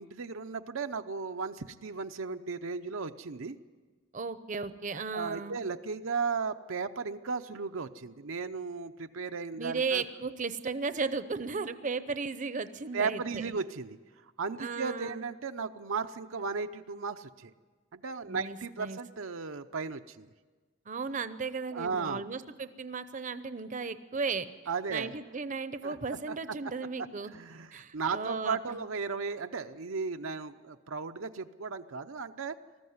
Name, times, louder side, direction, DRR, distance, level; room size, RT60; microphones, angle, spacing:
voice 1, 0.0-3.6 4.9-10.0 12.9-14.0 14.4-17.5 17.9-20.3 21.7-22.2 24.7-25.1 25.8-25.9 26.3-26.4 27.3-32.6, right 5 dB, 75° right, 7 dB, 0.7 m, -35 dB
voice 2, 4.1-5.6 9.6-13.4 14.6-15.2 18.3-19.0 20.9-24.4 24.9-27.3 27.7-28.8, right 4 dB, 40° right, 12 dB, 0.7 m, -35 dB
20.0 x 14.0 x 9.5 m, 1.4 s
head